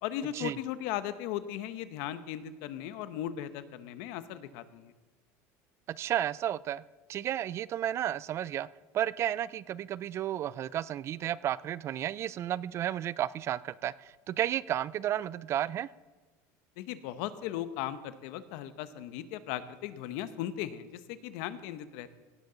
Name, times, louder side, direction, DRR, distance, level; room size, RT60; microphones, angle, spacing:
voice 1, 0.0-4.9 16.8-22.1, left 11 dB, 75° left, 12 dB, 0.9 m, -37 dB
voice 2, 5.9-6.8 7.1-8.7 8.9-15.9, right 11 dB, 40° right, 20 dB, 0.3 m, -32 dB
17.0 x 12.5 x 3.9 m, 1.2 s
supercardioid pair, 135°, 7 cm